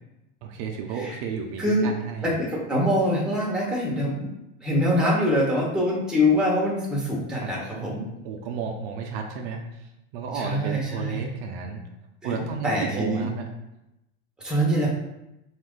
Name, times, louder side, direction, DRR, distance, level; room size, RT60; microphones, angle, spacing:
voice 1, 0.4-2.4 7.4-7.5 8.2-9.6 10.1-11.8 12.2-13.5, right 6 dB, 60° right, 3 dB, 0.6 m, -32 dB
voice 2, 1.6-1.9 2.2-4.3 4.6-8.0 10.3-11.2 12.2-13.3 14.4-14.9, equal, ahead, -3 dB, 0.8 m, -24 dB
2.9 x 2.5 x 3.5 m, 0.89 s
supercardioid pair, 125°, 35 cm